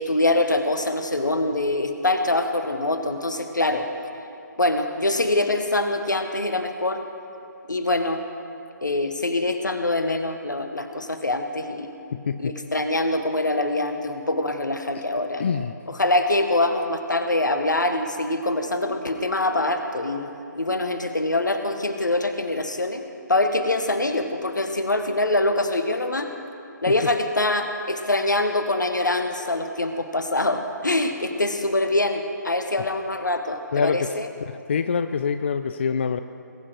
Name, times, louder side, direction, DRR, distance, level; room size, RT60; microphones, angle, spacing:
voice 1, 0.0-3.9 4.6-7.0 7.7-8.2 8.8-11.9 12.4-15.4 15.9-20.3 20.6-23.0 23.3-26.3 26.8-34.3, left 2 dB, 75° left, 7 dB, 1.3 m, -24 dB
voice 2, 12.1-12.5 15.4-15.7 33.7-34.1 34.7-36.2, left 6 dB, 35° left, 10 dB, 0.4 m, -25 dB
20.5 x 8.5 x 4.7 m, 2.7 s
figure-of-eight pair, 140°, 10 cm